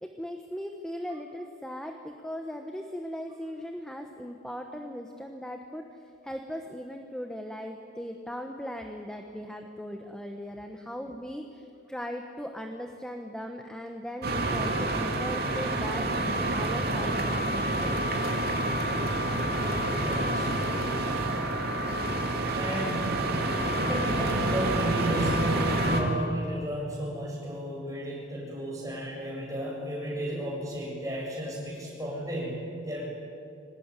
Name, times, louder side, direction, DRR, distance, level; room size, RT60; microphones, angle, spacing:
voice 1, 0.0-17.9, equal, 5° left, 4 dB, 1.1 m, -39 dB
sound 1, 14.2-26.0, right 1 dB, 50° right, 2.9 m, -28 dB
voice 2, 20.0-20.8 22.6-23.4 23.8-33.0, equal, 15° right, -3 dB, 7.2 m, -33 dB
24.5 x 18.5 x 9.8 m, 2.5 s
head